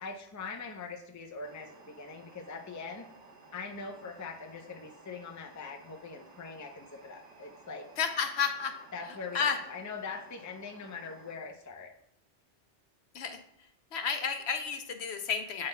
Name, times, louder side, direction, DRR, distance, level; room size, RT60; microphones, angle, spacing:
voice 1, 0.0-3.1 3.5-7.9 8.9-11.9, left 4 dB, 25° left, 3 dB, 0.5 m, -42 dB
sound 1, 1.4-11.3, right 3 dB, 85° right, 1.4 m, -56 dB
voice 2, 8.0-8.8 9.3-9.6 13.1-13.4 13.9-15.7, left 6 dB, 70° left, 6 dB, 0.9 m, -31 dB
8.7 x 5.8 x 2.2 m, 0.76 s
omnidirectional pair, 1.2 m